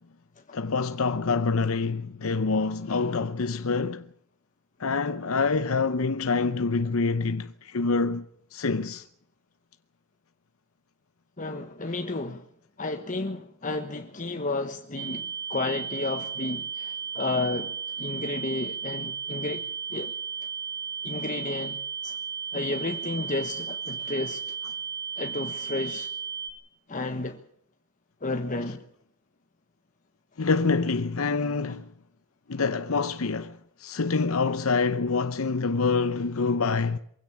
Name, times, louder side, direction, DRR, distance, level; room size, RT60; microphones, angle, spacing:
voice 1, 0.5-4.0 4.8-8.2 8.5-9.0 30.4-31.8 32.5-33.5 33.8-37.0, left 4 dB, 75° left, 0.8 m, -26 dB
voice 2, 11.4-12.4 12.8-19.6 19.9-20.1 21.0-22.1 22.5-24.4 25.2-26.1 26.9-27.4 28.2-28.8 31.7-31.8, left 2 dB, 40° left, 1.3 m, -32 dB
sound 1, 15.0-26.5, right 6 dB, 90° right, 5.3 m, -34 dB
23.5 x 16.5 x 7.4 m
head